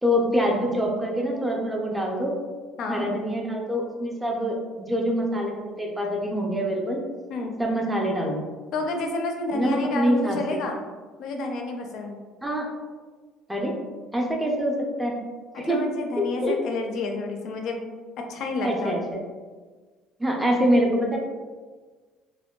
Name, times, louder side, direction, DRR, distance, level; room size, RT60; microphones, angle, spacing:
voice 1, 0.0-2.3 2.9-7.0 7.6-8.4 9.5-10.6 12.4-12.7 13.5-13.7 14.1-14.7 15.0-15.2 15.6-15.8 16.2-16.5 18.6-19.2 20.2-21.2, equal, 5° right, 0 dB, 0.4 m, -25 dB
voice 2, 8.7-10.8 11.2-12.2 15.5-17.8 18.2-19.0, left 3 dB, 55° left, 3 dB, 0.4 m, -29 dB
3.5 x 2.1 x 2.2 m, 1.4 s
cardioid pair, 145°, 0 cm